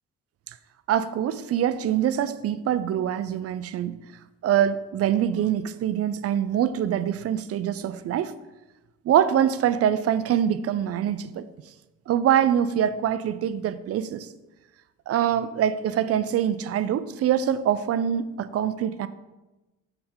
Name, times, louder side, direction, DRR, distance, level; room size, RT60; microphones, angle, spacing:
voice 1, 0.9-4.0 4.4-8.3 9.0-11.5 12.1-14.3 15.1-19.1, right 10 dB, 55° right, 0.4 m, -24 dB
6.7 x 3.7 x 4.3 m
cardioid pair, 90°, 30 cm